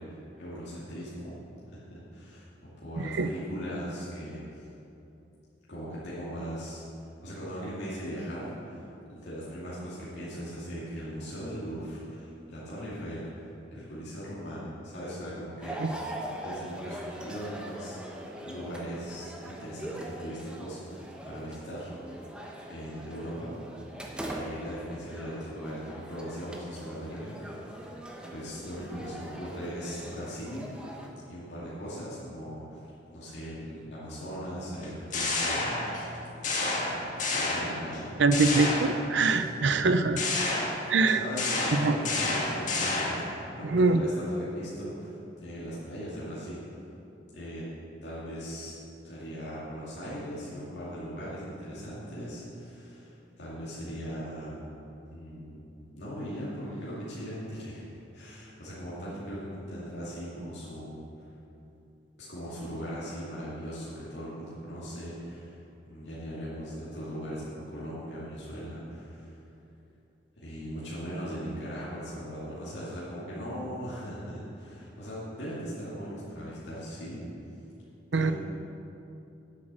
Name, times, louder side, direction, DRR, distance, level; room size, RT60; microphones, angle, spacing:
voice 1, 0.0-1.4 1.7-4.7 5.7-6.8 7.2-15.8 16.4-22.2 22.7-23.6 24.3-27.9 28.3-30.7 31.2-35.9 36.7-38.8 39.6-39.9 41.2-46.8 47.3-47.7 48.0-48.8 49.0-54.7 55.1-57.8 58.1-61.0 62.3-65.6 65.8-69.4 70.4-77.2 78.1-78.3, equal, 65° left, -10 dB, 2.5 m, -39 dB
voice 2, 3.0-3.3 15.8-15.9 38.2-40.2 40.9-41.2 41.7-42.0 43.6-44.0 78.1-78.3, right 3 dB, 70° right, 10 dB, 0.6 m, -24 dB
sound 1, 15.6-31.1, right 1 dB, 5° right, 1.0 m, -42 dB
sound 2, 34.8-36.1 36.4-38.0 38.3-39.4 40.2-43.3, left 2 dB, 45° left, 1.6 m, -30 dB
10.0 x 8.6 x 6.3 m, 2.8 s
head